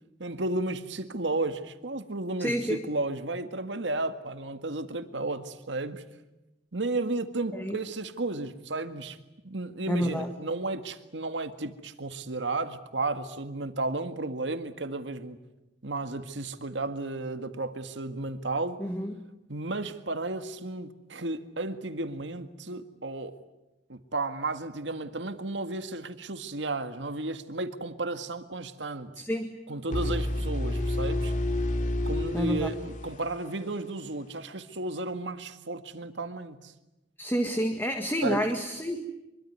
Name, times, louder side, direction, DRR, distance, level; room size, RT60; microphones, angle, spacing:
voice 1, 0.2-6.1 6.7-9.2 9.4-15.4 15.8-18.8 19.5-23.4 23.9-29.1 29.7-31.3 32.1-36.7 38.2-38.4, right 2 dB, 85° right, 1.9 m, -33 dB
voice 2, 2.4-2.8 7.5-7.8 9.9-10.3 18.8-19.2 29.2-29.5 32.3-32.7 37.2-39.0, equal, 10° left, 1.8 m, -29 dB
sound 1, 29.9-33.8, left 1 dB, 45° left, 2.6 m, -30 dB
25.0 x 23.5 x 9.5 m
head